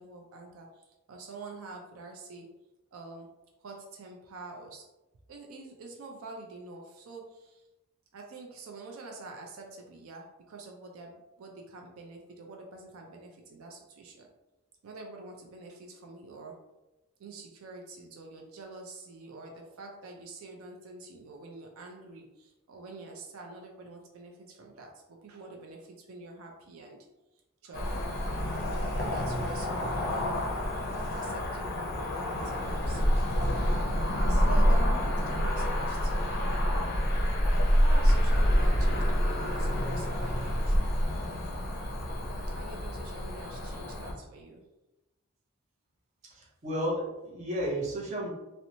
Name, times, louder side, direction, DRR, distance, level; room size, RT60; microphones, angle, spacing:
voice 1, 0.0-2.5 2.9-3.3 3.6-4.9 5.3-7.7 8.1-14.3 14.8-16.6 17.2-27.0 27.6-28.2 28.5-30.6 31.1-33.3 34.3-36.7 37.8-41.0 42.5-44.7, right 3 dB, 75° right, 1 dB, 0.4 m, -46 dB
Cricket / Motor vehicle (road), 27.7-44.1, equal, 45° left, 0.5 m, -27 dB
voice 2, 46.2-48.3, equal, 35° right, -3 dB, 0.6 m, -33 dB
2.8 x 2.1 x 2.6 m, 1.0 s
head